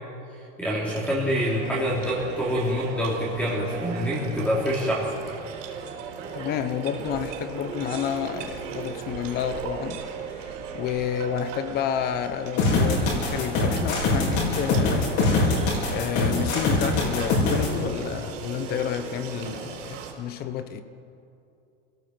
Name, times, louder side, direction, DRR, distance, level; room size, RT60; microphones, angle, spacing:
voice 1, 0.6-5.1, equal, 5° left, 3.0 m, -26 dB
sound 1, 0.7-20.1, right 6 dB, 85° right, 4.7 m, -37 dB
voice 2, 6.3-10.0 10.3-15.2 15.9-20.8, left 9 dB, 25° left, 0.9 m, -30 dB
sound 2, 12.6-17.7, left 3 dB, 45° left, 5.1 m, -23 dB
26.5 x 17.0 x 7.7 m
supercardioid pair, 175°, 36 cm